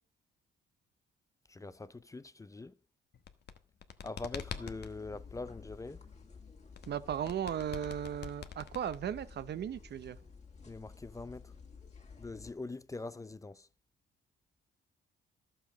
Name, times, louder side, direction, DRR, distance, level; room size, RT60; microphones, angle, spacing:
voice 1, 1.5-2.7 4.0-6.0 10.7-11.5 12.2-13.7, left 3 dB, 15° left, 0.5 m, -43 dB
sound 1, 3.1-4.9 6.7-9.3, left 8 dB, 55° left, 1.1 m, -45 dB
sound 2, 4.3-12.5, left 5 dB, 35° left, 2.5 m, -52 dB
voice 2, 6.9-10.2, right 9 dB, 60° right, 0.9 m, -36 dB
12.0 x 7.9 x 5.1 m
cardioid pair, 90°, 20 cm